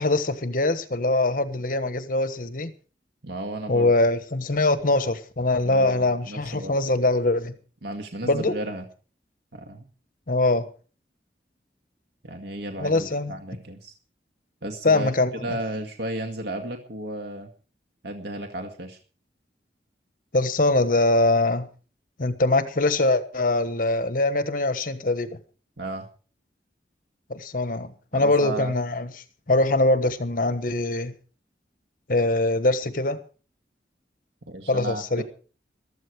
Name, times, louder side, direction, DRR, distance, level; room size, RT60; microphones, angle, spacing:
voice 1, 0.0-2.7 3.7-7.5 8.2-8.6 10.3-10.7 12.8-13.3 14.8-15.3 20.3-21.7 22.2-25.4 27.3-29.1 29.5-31.1 32.1-33.2 34.7-35.2, left 2 dB, 50° left, 1.3 m, -23 dB
voice 2, 3.2-3.9 5.7-6.8 7.8-8.8 9.5-9.9 12.2-13.9 14.6-15.1 15.4-17.5 18.0-19.0 25.8-26.1 28.1-28.7 34.5-35.2, right 1 dB, 85° right, 2.0 m, -34 dB
15.0 x 13.0 x 4.8 m
head